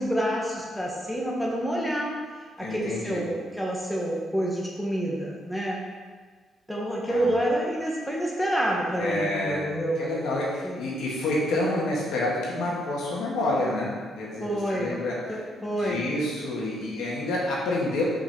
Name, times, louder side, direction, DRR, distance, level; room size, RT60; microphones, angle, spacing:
voice 1, 0.0-2.2 2.6-5.8 6.7-10.0 10.6-10.8 14.4-15.0 15.3-16.1, right 1 dB, 5° left, -3 dB, 1.6 m, -28 dB
voice 2, 2.6-3.2 7.1-7.3 9.0-9.6 10.0-18.0, left 2 dB, 80° left, -4 dB, 2.2 m, -28 dB
5.7 x 5.1 x 6.3 m, 1.5 s
cardioid pair, 90°, 0 cm